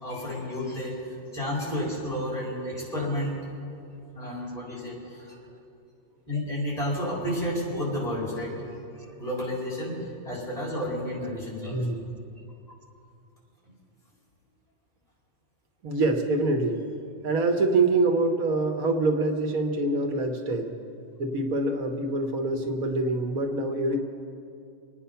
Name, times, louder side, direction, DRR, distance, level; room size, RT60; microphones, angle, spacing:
voice 1, 0.0-3.4 4.1-5.3 6.3-11.9, left 1 dB, 25° left, -5 dB, 4.6 m, -31 dB
voice 2, 11.7-12.1 15.8-16.8 17.2-20.8 21.2-24.0, right 2 dB, 85° right, 4 dB, 1.7 m, -25 dB
26.0 x 9.7 x 5.7 m, 2.6 s
omnidirectional pair, 1.4 m